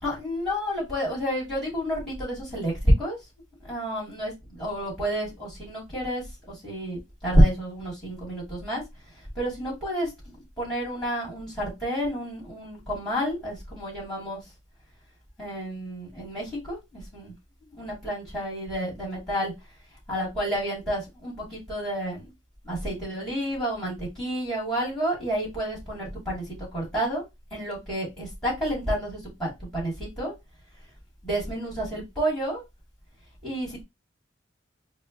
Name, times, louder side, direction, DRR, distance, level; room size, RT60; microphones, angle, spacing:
voice 1, 0.0-3.2 3.6-6.2 6.5-8.8 9.4-14.4 15.4-17.3 17.8-19.5 20.1-22.3 22.6-26.4 26.7-27.2 27.5-30.3 31.2-32.6 33.4-33.8, equal, ahead, -6 dB, 2.4 m, -29 dB
4.1 x 2.1 x 3.9 m, 0.21 s
head